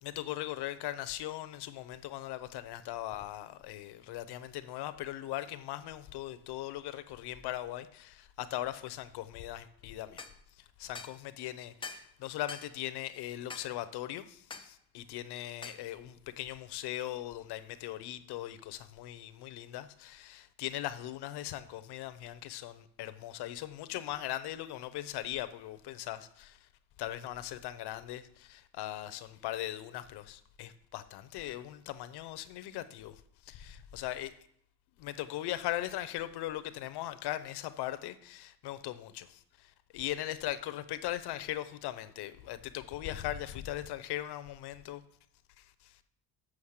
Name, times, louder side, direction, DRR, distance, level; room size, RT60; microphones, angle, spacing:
voice 1, 0.0-10.2 10.6-26.6 27.0-33.2 33.5-34.3 35.0-45.0 45.6-45.9, left 14 dB, 55° left, 0.7 m, -39 dB
sound 1, 10.2-10.4 10.9-11.2 11.8-12.1 12.5-12.7 13.5-13.7 14.5-14.7 15.6-15.8, left 4 dB, 10° left, 0.4 m, -44 dB
7.3 x 6.4 x 6.5 m
cardioid pair, 145°, 47 cm